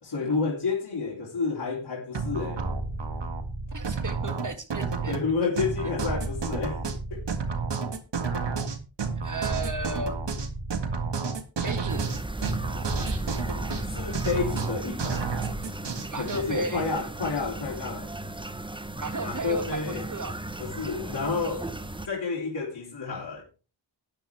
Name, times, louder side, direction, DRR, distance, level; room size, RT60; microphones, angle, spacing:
voice 1, 0.0-2.6 5.1-6.8 7.1-7.2 13.9-15.3 16.2-18.1 19.2-20.0 20.6-21.7 22.1-23.4, left 4 dB, 60° left, 3.0 m, -30 dB
sound 1, 2.1-16.4, right 4 dB, 60° right, 1.8 m, -31 dB
voice 2, 3.7-5.1 5.6-5.9 9.2-10.2 11.6-12.1 16.1-16.9 19.0-20.3, right 3 dB, 40° right, 2.1 m, -35 dB
sound 2, 11.9-22.1, right 2 dB, 10° right, 1.0 m, -36 dB
12.5 x 9.9 x 3.5 m
cardioid pair, 55°, 47 cm